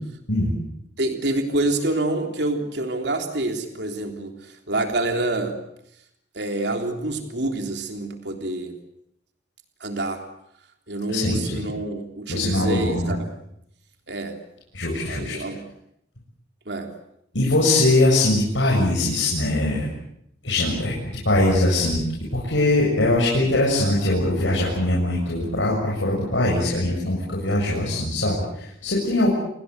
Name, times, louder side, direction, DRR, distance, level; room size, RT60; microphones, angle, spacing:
voice 1, 1.0-5.6 6.4-8.8 9.8-10.2 10.9-13.3 14.1-14.4 15.1-15.6 16.7-16.9, right 2 dB, 65° right, 5 dB, 3.5 m, -27 dB
voice 2, 11.1-11.6 12.3-13.1 14.7-15.3 17.3-19.9 20.4-20.9 21.2-22.0 22.3-29.3, left 2 dB, 85° left, -3 dB, 7.1 m, -21 dB
29.5 x 21.0 x 8.1 m, 0.76 s
head